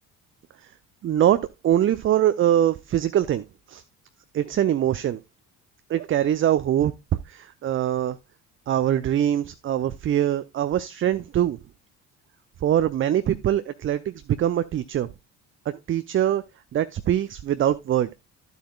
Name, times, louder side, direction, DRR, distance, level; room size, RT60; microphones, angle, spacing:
voice 1, 1.0-3.8 4.3-5.2 5.9-6.9 7.3-8.2 8.7-11.6 12.6-15.1 15.7-16.4 16.7-18.1, right 11 dB, 25° right, 0.5 m, -23 dB
12.0 x 7.9 x 2.3 m
figure-of-eight pair, 50°, 49 cm